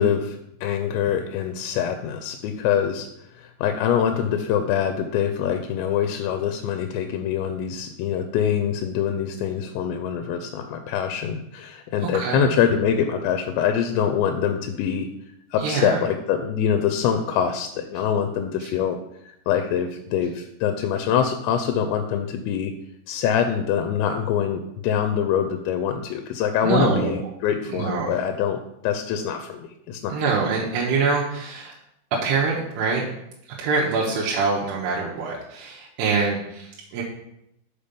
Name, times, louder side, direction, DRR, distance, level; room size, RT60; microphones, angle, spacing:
voice 1, 0.0-3.1 3.3-15.1 15.5-19.0 19.2-22.7 23.1-28.6 28.8-30.2, left 8 dB, 85° left, 6 dB, 2.7 m, -24 dB
voice 2, 12.0-12.5 15.6-16.1 18.6-18.7 26.6-27.1 27.7-28.2 30.1-31.7 32.1-33.1 33.5-37.0, right 4 dB, 75° right, -4 dB, 2.7 m, -25 dB
6.8 x 4.9 x 5.2 m, 0.80 s
omnidirectional pair, 5.4 m